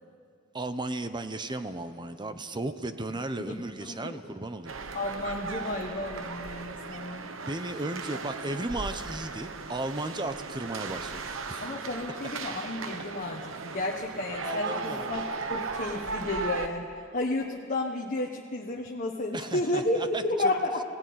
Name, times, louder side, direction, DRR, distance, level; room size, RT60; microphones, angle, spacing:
voice 1, 0.5-4.7 7.5-11.6 14.4-15.1 19.3-20.5, right 2 dB, 20° right, 10 dB, 0.9 m, -35 dB
voice 2, 3.4-4.2 4.9-7.3 11.6-20.8, left 2 dB, 40° left, -1 dB, 1.3 m, -32 dB
sound 1, 4.7-16.7, right 4 dB, 75° right, 1.2 m, -37 dB
20.0 x 17.0 x 9.5 m, 2.4 s
head